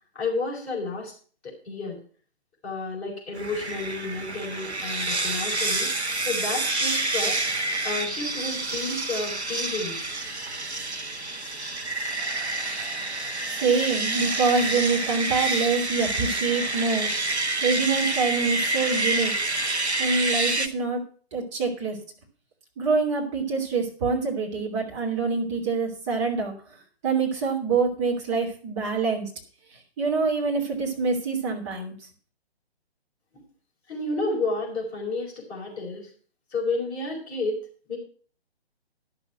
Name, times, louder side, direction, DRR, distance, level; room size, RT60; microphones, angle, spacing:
voice 1, 0.1-1.1 1.4-2.0 2.6-7.4 7.8-10.0 33.9-36.1 36.5-37.6 37.9-38.0, left 3 dB, 15° left, -5 dB, 4.6 m, -31 dB
sound 1, 3.4-20.7, right 2 dB, 90° right, 1.1 m, -28 dB
voice 2, 13.6-17.1 17.6-19.3 20.0-21.0 21.3-22.0 22.8-26.5 27.0-29.3 30.0-31.9, right 4 dB, 30° right, -1 dB, 2.9 m, -25 dB
11.5 x 7.1 x 5.9 m, 0.41 s
figure-of-eight pair, 135°, 32 cm